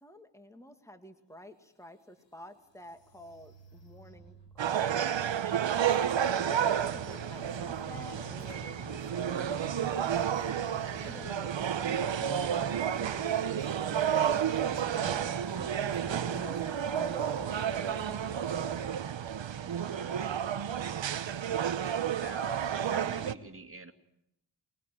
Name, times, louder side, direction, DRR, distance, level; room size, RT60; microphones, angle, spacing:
voice 1, 0.0-10.3 11.0-15.7 16.1-18.4, left 1 dB, 5° left, 8 dB, 2.3 m, -50 dB
sound 1, 1.1-1.2 1.7-4.8, right 4 dB, 85° left, 6.5 m, -58 dB
sound 2, 4.6-23.3, right 9 dB, 80° right, 1.1 m, -31 dB
sound 3, 6.8-18.9, left 1 dB, 50° left, 4.0 m, -48 dB
voice 2, 19.5-21.0 22.2-23.9, right 2 dB, 30° right, 7 dB, 2.4 m, -46 dB
24.0 x 21.5 x 9.3 m, 0.80 s
wide cardioid pair, 85°, 44 cm